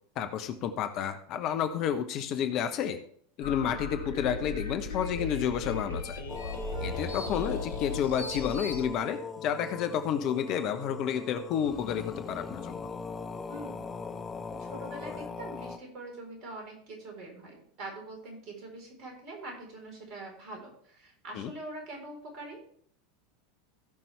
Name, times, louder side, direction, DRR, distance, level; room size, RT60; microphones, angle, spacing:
voice 1, 0.2-3.0 3.4-6.2 6.8-12.9 21.3-21.5, left 8 dB, 45° left, 8 dB, 1.0 m, -30 dB
sound 1, 3.4-8.9, left 3 dB, 75° left, 1.7 m, -36 dB
sound 2, 6.3-15.8, left 4 dB, 20° left, 1.0 m, -40 dB
voice 2, 13.5-13.8 14.6-22.6, right 2 dB, 45° right, 1 dB, 4.3 m, -43 dB
17.5 x 6.0 x 3.4 m, 0.62 s
figure-of-eight pair, 85°, 0 cm